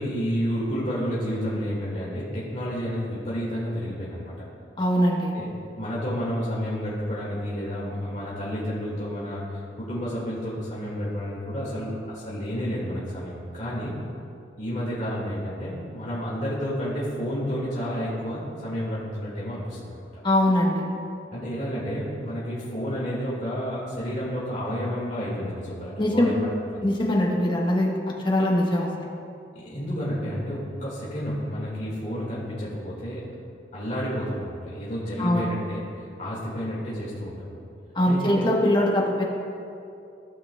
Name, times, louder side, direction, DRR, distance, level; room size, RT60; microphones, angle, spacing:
voice 1, 0.0-4.4 5.3-5.5 5.8-14.0 14.6-20.0 21.3-26.3 26.7-26.9 29.5-33.3 33.7-37.5 38.1-38.4, equal, 40° left, -8 dB, 1.8 m, -30 dB
voice 2, 4.8-5.3 20.2-20.8 26.0-26.3 26.8-27.9 28.2-29.1 35.2-35.4 37.9-39.2, left 1 dB, 25° left, -2 dB, 1.1 m, -22 dB
16.0 x 5.7 x 2.2 m, 2.6 s
head